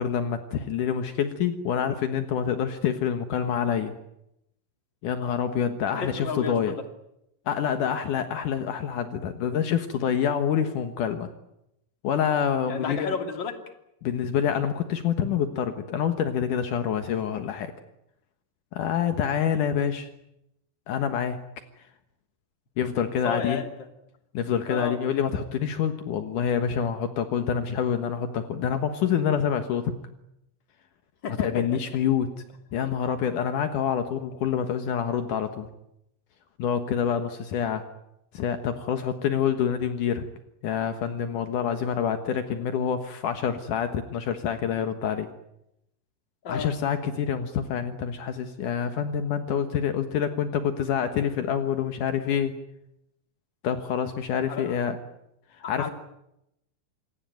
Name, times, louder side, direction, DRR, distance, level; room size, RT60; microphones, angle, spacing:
voice 1, 0.0-3.9 5.0-6.8 7.5-11.3 12.0-13.2 14.0-17.7 18.7-20.1 20.9-21.4 22.8-23.6 24.3-29.9 31.4-32.3 32.7-35.7 36.6-37.8 38.3-40.3 40.6-45.3 46.5-52.5 53.6-55.0 55.5-55.9, left 8 dB, 85° left, 8 dB, 1.8 m, -27 dB
voice 2, 5.9-6.7 12.6-13.5 23.2-23.7 24.7-25.0 31.2-31.5 46.4-46.7 54.5-54.7 55.8-55.9, left 5 dB, 30° left, 6 dB, 2.4 m, -31 dB
27.0 x 22.0 x 9.3 m, 0.82 s
omnidirectional pair, 5.9 m